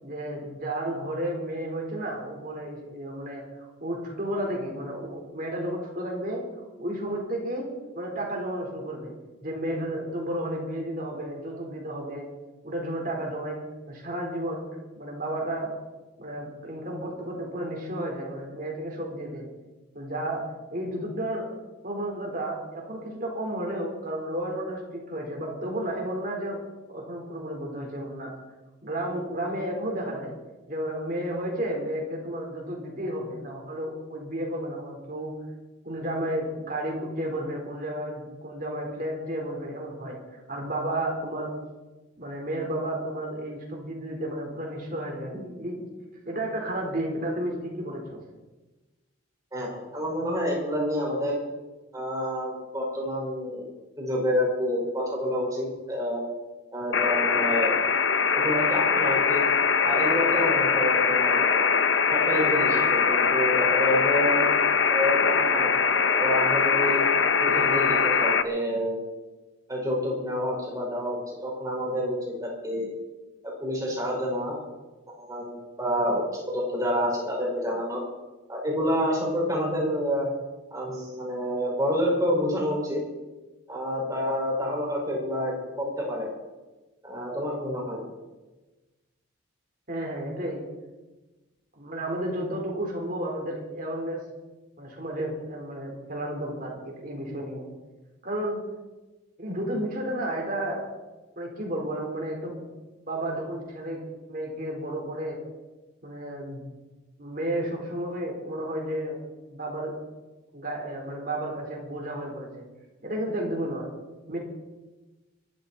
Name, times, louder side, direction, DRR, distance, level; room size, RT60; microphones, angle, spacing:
voice 1, 0.0-7.7 7.9-9.1 9.4-12.3 12.6-13.6 13.9-14.7 15.0-15.7 16.2-19.4 19.9-20.4 20.7-21.5 21.8-26.6 26.9-28.3 28.8-30.3 30.7-35.3 35.8-41.5 42.2-45.9 46.2-48.2 89.9-90.7 91.7-94.2 94.8-97.7 98.2-98.6 99.4-100.9 101.4-102.6 103.1-104.0 104.3-105.4 106.0-106.6 107.2-109.2 109.5-109.9 110.5-112.6 113.0-113.9 114.3-114.4, right 1 dB, 40° right, 0 dB, 4.4 m, -32 dB
voice 2, 49.5-51.4 51.9-53.7 54.0-56.2 56.7-57.8 58.3-59.4 59.8-61.6 62.1-64.5 64.9-65.7 66.2-67.0 67.4-69.0 69.7-73.0 73.6-74.6 75.2-78.0 78.5-80.3 80.7-83.0 83.7-86.3 87.0-88.0, equal, 15° right, -3 dB, 5.5 m, -28 dB
sound 1, 56.9-68.4, left 5 dB, 60° left, 1.0 m, -22 dB
23.5 x 12.5 x 4.4 m, 1.2 s
head